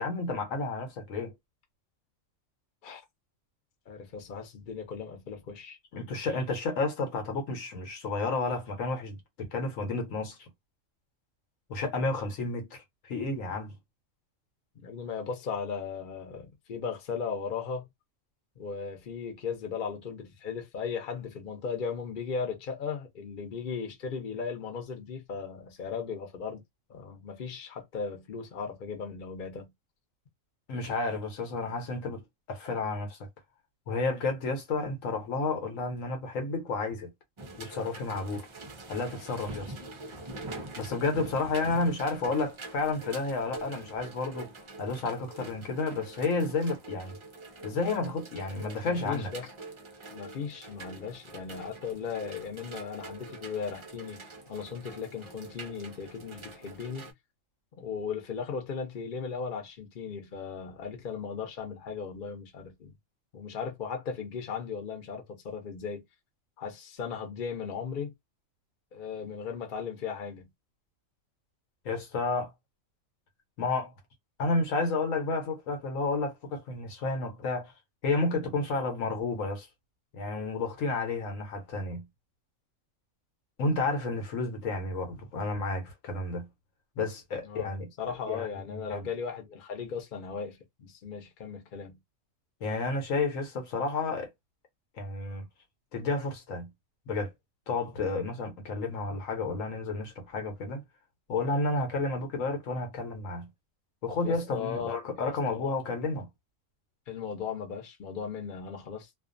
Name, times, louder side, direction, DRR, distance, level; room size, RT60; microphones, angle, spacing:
voice 1, 0.0-1.3 5.9-10.4 11.7-13.7 30.7-33.2 33.9-37.1 37.6-38.5 38.9-39.7 40.8-44.5 44.8-47.2 47.6-49.3 71.8-72.5 73.6-73.9 74.4-77.7 78.0-79.7 80.1-82.1 83.6-86.5 87.0-87.9 88.3-89.1 92.6-94.3 95.0-95.5 95.9-96.7 97.1-97.3 97.7-100.8 101.3-103.5 104.0-106.3, left 3 dB, 80° left, 1.2 m, -31 dB
voice 2, 3.9-5.8 14.8-17.9 18.6-26.6 26.9-29.7 48.8-49.5 50.1-54.2 54.5-57.1 57.8-62.9 63.3-66.0 66.6-68.1 68.9-70.5 87.4-87.7 88.0-92.0 104.2-105.7 107.1-109.2, left 6 dB, 45° left, 0.8 m, -37 dB
sound 1, 37.4-57.1, right 2 dB, 45° right, 0.3 m, -45 dB
2.5 x 2.4 x 2.5 m
omnidirectional pair, 1.4 m